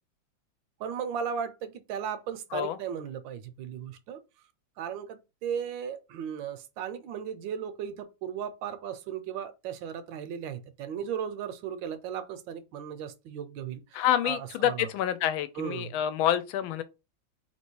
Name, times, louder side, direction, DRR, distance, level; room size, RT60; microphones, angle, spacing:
voice 1, 0.8-4.2 4.8-14.9 15.5-15.9, right 8 dB, 75° right, 1.3 m, -36 dB
voice 2, 13.9-16.8, left 11 dB, 90° left, 1.4 m, -27 dB
3.3 x 3.0 x 4.5 m
omnidirectional pair, 2.1 m